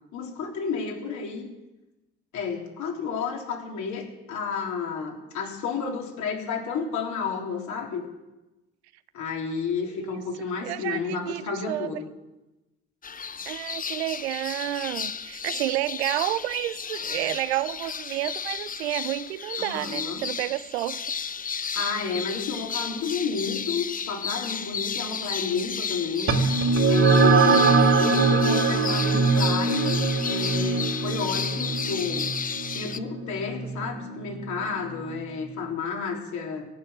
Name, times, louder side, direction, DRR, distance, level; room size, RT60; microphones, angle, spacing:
voice 1, 0.1-1.5 2.3-8.0 9.1-12.1 19.6-20.3 21.7-26.4 26.9-32.3 32.7-36.7, left 5 dB, 60° left, 0 dB, 3.7 m, -31 dB
voice 2, 10.0-11.4 11.7-11.9 13.5-21.0 27.4-28.0, right 15 dB, 80° right, 15 dB, 0.7 m, -30 dB
sound 1, 13.0-33.0, left 6 dB, 25° left, 0.8 m, -33 dB
sound 2, 26.3-35.1, right 4 dB, 40° right, 2.6 m, -22 dB
16.5 x 6.6 x 9.4 m, 1.0 s
hypercardioid pair, 60°, 33 cm